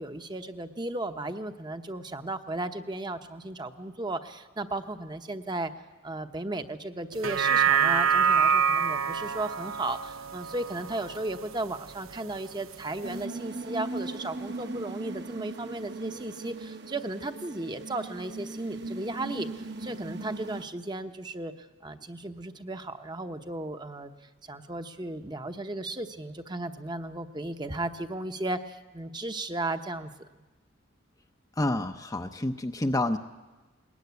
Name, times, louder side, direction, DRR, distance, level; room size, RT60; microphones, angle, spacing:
voice 1, 0.0-5.7 6.0-24.1 24.4-30.1, right 2 dB, 20° right, 8 dB, 0.9 m, -35 dB
sound 1, 7.1-11.7 12.1-12.2, right 7 dB, 90° right, 0.8 m, -26 dB
sound 2, 13.0-20.7, right 2 dB, 55° right, 1.3 m, -39 dB
voice 2, 31.6-33.2, left 1 dB, 15° left, 6 dB, 0.6 m, -28 dB
20.5 x 19.5 x 9.5 m, 1.2 s
head